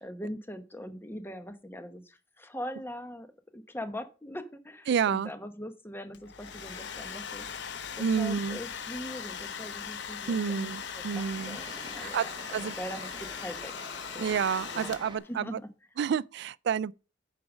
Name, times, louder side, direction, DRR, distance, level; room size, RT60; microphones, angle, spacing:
voice 1, 0.0-3.3 3.5-7.5 7.9-11.7 11.9-13.7 14.1-14.4 14.7-15.0 15.3-15.7, equal, 10° left, 0.9 m, -41 dB
voice 2, 4.9-5.3 8.0-8.6 10.3-11.6 12.0-12.7 14.2-15.6 16.0-16.9, right 7 dB, 60° right, 0.3 m, -29 dB
Domestic sounds home sounds, 6.1-15.3, left 7 dB, 65° left, 0.7 m, -40 dB
sound 1, 6.4-15.2, right 2 dB, 25° right, 0.9 m, -49 dB
8.6 x 5.1 x 6.0 m
head